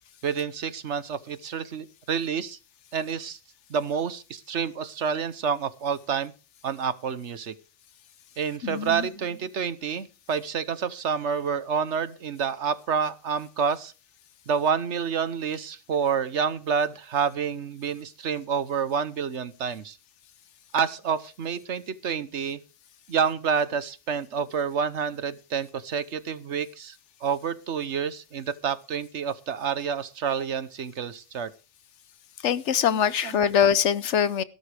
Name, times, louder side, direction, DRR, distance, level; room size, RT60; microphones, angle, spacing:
voice 1, 0.2-2.6 2.9-3.4 3.7-6.3 6.6-7.5 8.4-13.9 14.5-20.0 20.7-22.6 23.1-27.0 27.2-31.5 32.8-33.0 33.2-33.5, right 6 dB, 75° right, 14 dB, 1.3 m, -28 dB
voice 2, 8.6-9.1 32.4-34.4, left 8 dB, 80° left, 16 dB, 1.1 m, -23 dB
17.5 x 12.5 x 3.4 m, 0.33 s
omnidirectional pair, 1.2 m